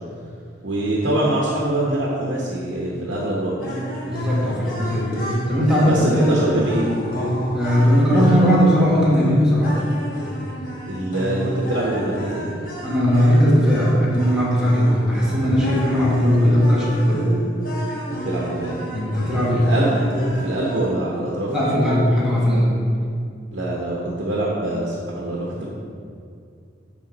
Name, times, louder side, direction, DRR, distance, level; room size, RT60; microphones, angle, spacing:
voice 1, 0.6-3.5 5.8-6.9 10.9-12.5 18.2-18.8 19.5-21.5 23.5-25.7, right 1 dB, 80° right, -5 dB, 1.0 m, -24 dB
sound 1, 3.6-20.8, right 1 dB, 50° left, 1.5 m, -30 dB
voice 2, 4.1-6.3 7.5-9.7 12.8-17.3 18.9-19.7 21.5-22.7, equal, 5° right, -8 dB, 1.4 m, -18 dB
10.5 x 3.5 x 3.9 m, 2.3 s
head